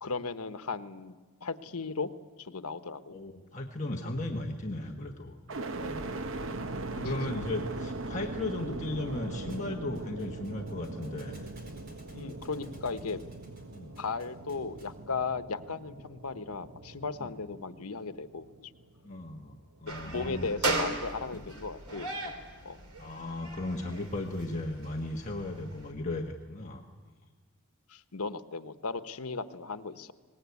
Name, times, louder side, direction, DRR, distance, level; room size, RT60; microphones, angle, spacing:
voice 1, 0.0-2.1 2.4-3.2 8.2-8.3 10.2-10.3 12.1-13.2 14.0-18.7 19.9-22.3 22.6-22.8 27.9-30.1, left 4 dB, 90° left, 10 dB, 1.1 m, -36 dB
voice 2, 3.1-6.2 6.9-11.4 12.6-12.8 13.7-14.0 17.2-17.3 19.0-20.5 23.0-26.8, left 2 dB, 35° left, 0 dB, 1.4 m, -36 dB
sound 1, 5.5-19.5 20.0-20.7, right 2 dB, 65° right, 0.9 m, -40 dB
Thump thud, 9.5-15.1, equal, 40° right, 4.6 m, -55 dB
sound 2, 19.9-25.9, right 2 dB, 85° right, 3.6 m, -37 dB
23.5 x 20.0 x 9.6 m, 1.4 s
head